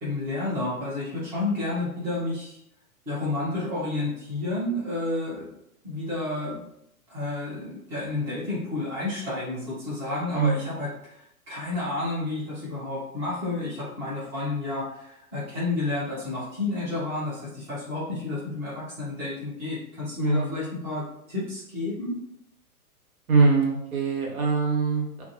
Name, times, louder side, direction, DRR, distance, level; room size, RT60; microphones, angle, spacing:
voice 1, 0.0-2.6 3.1-5.4 5.8-6.6 7.1-22.2, left 2 dB, 5° right, -10 dB, 0.4 m, -30 dB
voice 2, 10.3-10.7 20.2-20.6 23.3-25.2, right 4 dB, 75° right, -2 dB, 0.9 m, -23 dB
2.4 x 2.1 x 2.6 m, 0.75 s
figure-of-eight pair, 115°, 44 cm